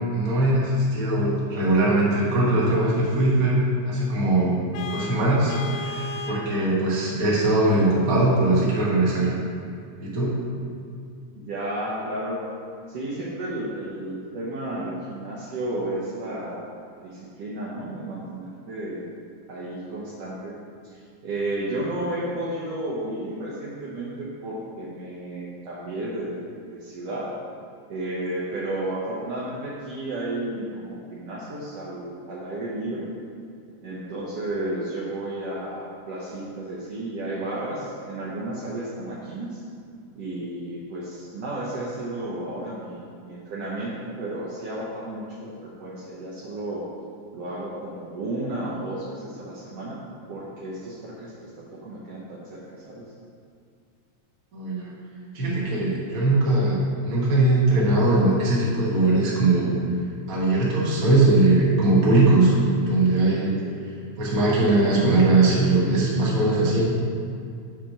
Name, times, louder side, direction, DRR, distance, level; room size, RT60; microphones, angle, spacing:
voice 1, 0.1-3.6 3.9-4.6 4.9-9.3 10.0-10.3 54.5-54.9 55.3-59.7 60.3-63.6 64.2-66.8, right 2 dB, 40° right, -6 dB, 1.3 m, -20 dB
Vehicle horn car horn honking, 4.7-6.5, left 4 dB, 75° left, 1.6 m, -34 dB
voice 2, 11.4-12.4 12.9-16.7 16.9-19.1 19.5-20.6 20.8-27.3 27.9-33.1 33.8-39.6 40.1-46.9 47.3-50.0 50.3-53.1 63.6-63.8, right 1 dB, 65° right, -6 dB, 1.7 m, -32 dB
5.7 x 4.9 x 6.0 m, 2.3 s
omnidirectional pair, 3.4 m